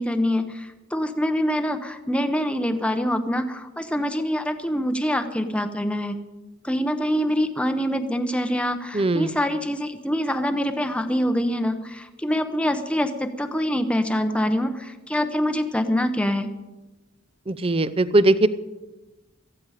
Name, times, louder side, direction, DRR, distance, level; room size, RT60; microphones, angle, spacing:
voice 1, 0.0-6.2 6.6-16.5, equal, 5° left, 7 dB, 0.7 m, -25 dB
voice 2, 8.9-9.3 17.5-18.5, right 2 dB, 30° right, 14 dB, 0.5 m, -20 dB
18.0 x 13.5 x 4.9 m, 1.1 s
head